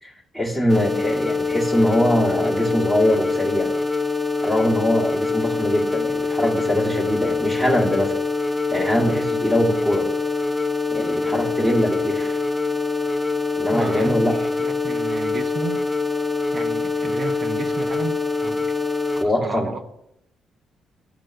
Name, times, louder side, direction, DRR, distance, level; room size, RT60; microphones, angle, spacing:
voice 1, 0.0-3.7 4.4-8.2 8.7-10.1 10.9-12.4 13.6-14.4 19.2-19.7, left 1 dB, 15° right, -2 dB, 2.3 m, -22 dB
sound 1, 0.7-19.2, left 3 dB, 15° left, 0.8 m, -24 dB
voice 2, 13.7-15.8 16.5-18.7 19.2-19.8, right 4 dB, 45° right, 7 dB, 0.9 m, -32 dB
13.0 x 5.1 x 3.4 m, 0.77 s
cardioid pair, 90°, 0 cm